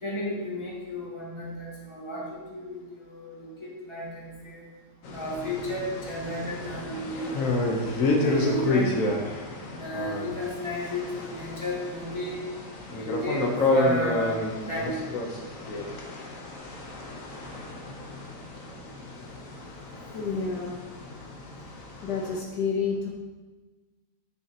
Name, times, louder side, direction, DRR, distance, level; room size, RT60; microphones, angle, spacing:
voice 1, 0.0-4.6 5.1-7.7 8.2-9.0 9.6-12.4 12.9-14.4 14.7-15.0 20.1-20.3, equal, 15° left, -6 dB, 2.0 m, -33 dB
sound 1, 5.0-22.4, left 2 dB, 55° left, 1.3 m, -30 dB
voice 2, 19.0-19.4 20.1-20.8 22.0-23.1, left 5 dB, 70° left, -1 dB, 1.3 m, -30 dB
9.8 x 6.6 x 2.9 m, 1.3 s
omnidirectional pair, 1.9 m